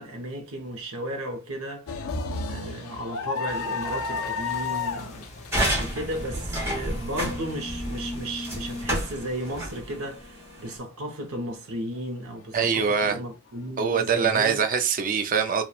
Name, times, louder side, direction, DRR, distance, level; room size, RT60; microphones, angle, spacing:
voice 1, 0.0-2.1 2.5-5.3 5.8-14.6, right 1 dB, 85° right, 0.7 m, -34 dB
sound 1, 1.9-8.0 8.5-8.6 9.7-10.0, left 4 dB, 85° left, 0.5 m, -32 dB
sound 2, 3.5-9.8, left 1 dB, 35° left, 0.6 m, -45 dB
sound 3, 5.5-10.8, equal, 10° right, 0.9 m, -30 dB
voice 2, 12.5-13.2 13.8-15.6, right 6 dB, 40° right, 0.4 m, -23 dB
2.9 x 2.1 x 2.3 m
head